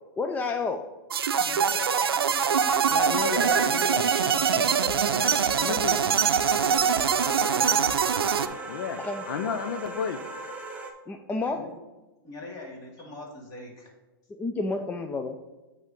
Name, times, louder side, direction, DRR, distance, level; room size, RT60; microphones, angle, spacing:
voice 1, 0.2-0.8 9.0-9.2 11.1-11.6 14.3-15.4, left 3 dB, 15° left, 5 dB, 0.4 m, -30 dB
sound 1, 1.1-8.5, right 7 dB, 85° right, 0.5 m, -23 dB
voice 2, 1.3-3.0 3.8-5.9 6.5-7.9 11.4-11.7 12.2-13.9, left 2 dB, 30° left, -1 dB, 2.4 m, -42 dB
sound 2, 2.5-10.9, right 3 dB, 10° right, 1.0 m, -41 dB
voice 3, 2.9-4.1 5.0-6.0 6.6-6.9 8.7-10.2, left 7 dB, 65° left, 8 dB, 0.6 m, -33 dB
9.0 x 3.5 x 5.2 m, 1.1 s
hypercardioid pair, 120°, 12 cm